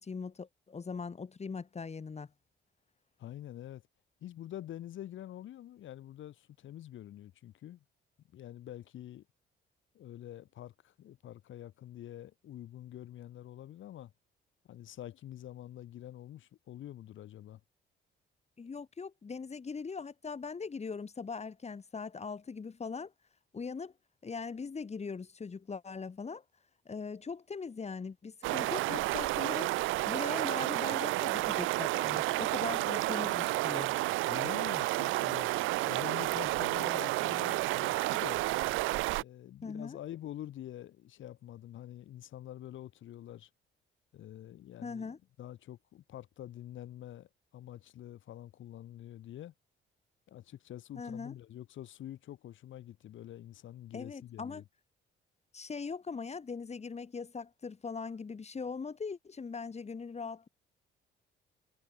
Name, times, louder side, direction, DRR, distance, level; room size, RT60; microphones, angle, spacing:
voice 1, 0.0-2.3 18.6-23.1 23.5-23.9 24.2-26.4 26.9-29.8 30.1-34.0 39.6-40.0 44.8-45.2 51.0-51.3 53.9-54.6 55.5-60.5, left 5 dB, 35° left, 2.7 m, -40 dB
voice 2, 3.2-3.8 4.2-7.8 8.3-9.2 9.9-14.1 14.7-17.6 34.3-35.5 35.9-38.4 39.1-43.5 44.1-49.5 50.3-54.6, left 12 dB, 75° left, 6.5 m, -46 dB
sound 1, 28.4-39.2, right 19 dB, 85° right, 0.4 m, -31 dB
cardioid pair, 90°, 20 cm